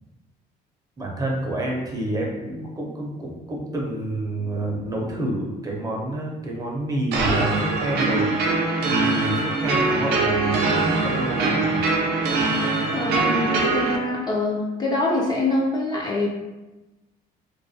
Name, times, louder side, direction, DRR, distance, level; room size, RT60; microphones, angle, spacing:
voice 1, 1.0-8.3 8.8-11.8, right 1 dB, 20° right, -2 dB, 0.6 m, -28 dB
sound 1, 7.1-14.0, right 3 dB, 75° right, 0.5 m, -22 dB
voice 2, 12.9-16.3, left 2 dB, 25° left, -3 dB, 0.4 m, -24 dB
2.3 x 2.1 x 2.6 m, 1.1 s
cardioid pair, 110°, 17 cm